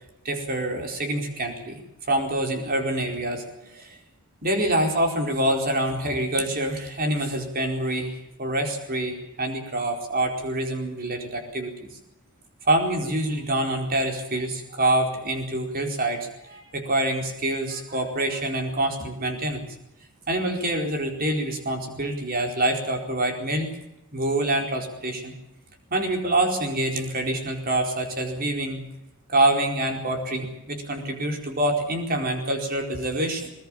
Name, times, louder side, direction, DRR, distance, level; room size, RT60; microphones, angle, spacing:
voice 1, 0.2-3.8 4.4-11.9 12.7-19.6 20.3-23.7 24.1-25.3 25.9-28.8 29.3-33.5, right 1 dB, 40° right, 3 dB, 4.5 m, -26 dB
20.5 x 20.5 x 7.4 m, 0.87 s
head